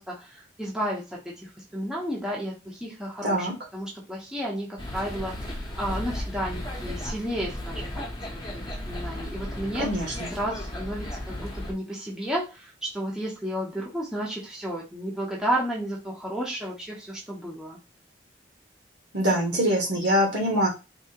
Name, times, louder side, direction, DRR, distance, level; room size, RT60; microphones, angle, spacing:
voice 1, 0.0-3.5 3.7-8.0 8.3-9.9 10.3-17.8, equal, 5° right, -5 dB, 0.8 m, -32 dB
sound 1, 4.8-11.7, left 1 dB, 25° left, 0.9 m, -35 dB
voice 2, 9.7-10.3 19.1-20.7, equal, 70° right, -1 dB, 1.4 m, -24 dB
3.6 x 2.8 x 2.8 m, 0.28 s
head